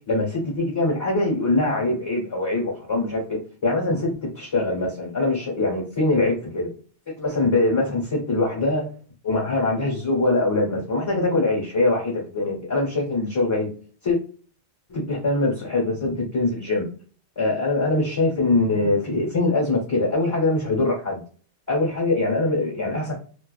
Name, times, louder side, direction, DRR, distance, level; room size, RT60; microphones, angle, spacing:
voice 1, 0.1-6.7 7.2-8.9 9.2-13.7 14.0-14.2 14.9-16.9 17.4-21.2 21.7-23.2, left 2 dB, 25° left, -3 dB, 0.9 m, -23 dB
2.3 x 2.3 x 2.3 m, 0.41 s
omnidirectional pair, 1.2 m